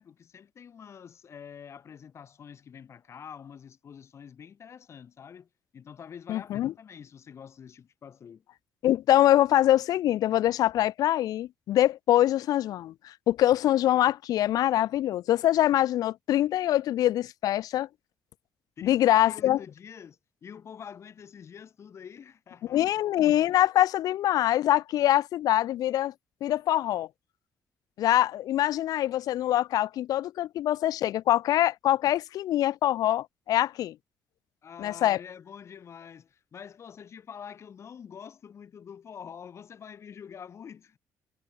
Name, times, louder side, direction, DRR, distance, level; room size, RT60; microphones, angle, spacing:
voice 1, 0.0-8.4 18.8-22.8 34.6-41.0, left 7 dB, 45° left, 7.6 m, -46 dB
voice 2, 6.3-6.7 8.8-17.9 18.8-19.6 22.7-26.1 26.4-27.1 28.0-33.9 34.8-35.2, left 13 dB, 75° left, 0.8 m, -24 dB
cardioid pair, 125°, 6 cm